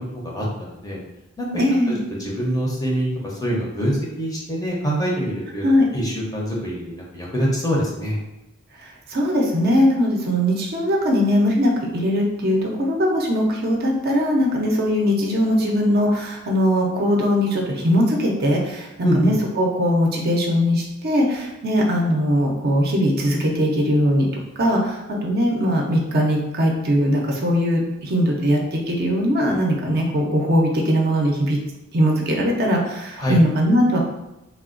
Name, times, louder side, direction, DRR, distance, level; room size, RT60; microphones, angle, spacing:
voice 1, 0.1-1.0 1.4-1.6 2.2-8.2 19.0-19.3 33.2-33.4, equal, 15° left, -3 dB, 0.6 m, -25 dB
voice 2, 1.6-2.0 5.6-5.8 8.8-24.3 24.6-31.6 31.9-34.0, equal, 45° right, -1 dB, 0.5 m, -20 dB
3.3 x 2.2 x 2.4 m, 0.93 s
head